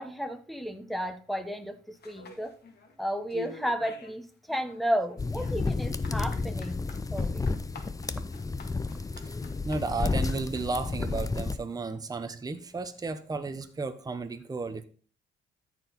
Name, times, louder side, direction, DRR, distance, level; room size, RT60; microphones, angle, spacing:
voice 1, 0.0-2.5 3.0-6.8 7.1-7.6, equal, ahead, 9 dB, 1.1 m, -33 dB
sound 1, 2.0-2.9 3.3-4.2 4.5-10.8, left 5 dB, 55° left, 1.9 m, -48 dB
sound 2, 5.2-11.6, left 3 dB, 15° left, 0.5 m, -31 dB
voice 2, 9.6-14.8, right 3 dB, 20° right, 8 dB, 0.8 m, -33 dB
13.5 x 4.5 x 4.0 m, 0.42 s
cardioid pair, 90°, 20 cm